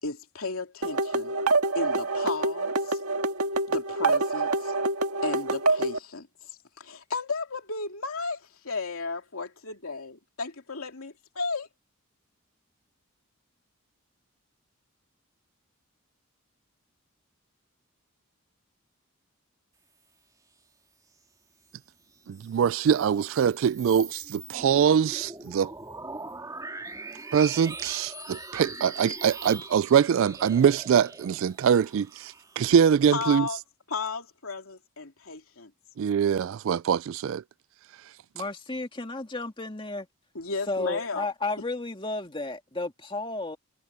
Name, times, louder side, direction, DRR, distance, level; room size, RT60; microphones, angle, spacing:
voice 1, 0.0-1.3 1.7-3.0 3.7-4.7 5.2-11.7 33.1-33.6 33.9-35.7 40.3-41.3, left 4 dB, 75° left, 2.9 m, -34 dB
sound 1, 0.8-6.0, right 3 dB, 85° right, 2.1 m, -26 dB
sound 2, 22.2-33.1, right 3 dB, 15° right, 2.9 m, -42 dB
voice 2, 22.3-25.7 27.3-33.5 36.0-37.4, right 7 dB, 60° right, 0.3 m, -23 dB
voice 3, 38.3-40.1 40.7-43.6, left 2 dB, 25° left, 2.2 m, -33 dB
head